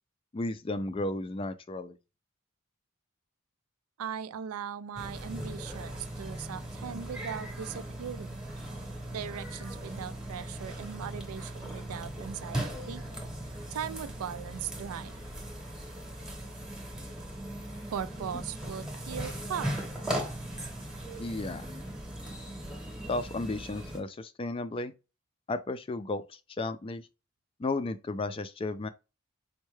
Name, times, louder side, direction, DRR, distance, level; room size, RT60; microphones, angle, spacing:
voice 1, 0.3-2.0 21.2-21.7 23.1-24.9 25.5-27.1 27.6-28.9, left 2 dB, 25° left, 0.3 m, -34 dB
voice 2, 4.0-8.4 9.1-13.0 13.7-15.2 17.9-19.8, right 8 dB, 90° right, 0.4 m, -39 dB
sound 1, 5.0-24.0, right 1 dB, 5° right, 0.9 m, -39 dB
4.4 x 2.2 x 3.1 m
head